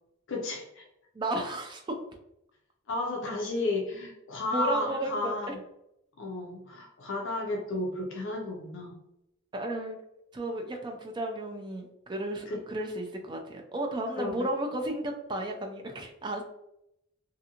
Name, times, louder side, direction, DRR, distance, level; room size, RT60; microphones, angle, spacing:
voice 1, 0.3-0.9 2.9-5.6 6.2-9.0 12.5-12.6 14.2-14.5, left 2 dB, 60° left, 0 dB, 0.5 m, -33 dB
voice 2, 1.1-1.8 4.5-5.5 9.5-10.0 10.3-16.4, right 1 dB, 20° right, 3 dB, 0.4 m, -33 dB
2.6 x 2.5 x 2.7 m, 0.82 s
head